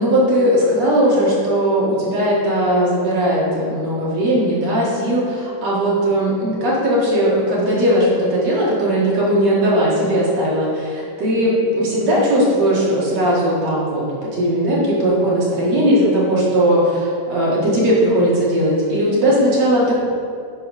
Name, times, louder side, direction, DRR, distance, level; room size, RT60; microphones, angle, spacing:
voice 1, 0.0-14.0 14.3-19.9, equal, 55° right, -7 dB, 2.9 m, -18 dB
11.5 x 4.6 x 5.4 m, 2.3 s
omnidirectional pair, 3.9 m